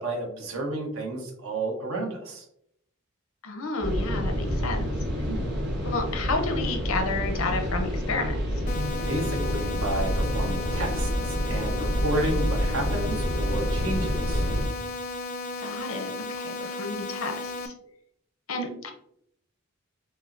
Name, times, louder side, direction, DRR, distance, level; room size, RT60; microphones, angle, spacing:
voice 1, 0.0-2.4 5.2-5.5 9.1-14.4, right 1 dB, 85° right, 1 dB, 1.0 m, -31 dB
voice 2, 3.4-4.8 5.8-8.4 15.6-17.7 18.5-18.9, left 3 dB, 85° left, 4 dB, 0.7 m, -31 dB
sound 1, 3.8-14.7, equal, 55° right, 1.0 m, -28 dB
sound 2, 8.7-17.7, left 3 dB, 35° left, 0.3 m, -35 dB
5.4 x 2.1 x 2.5 m, 0.73 s
head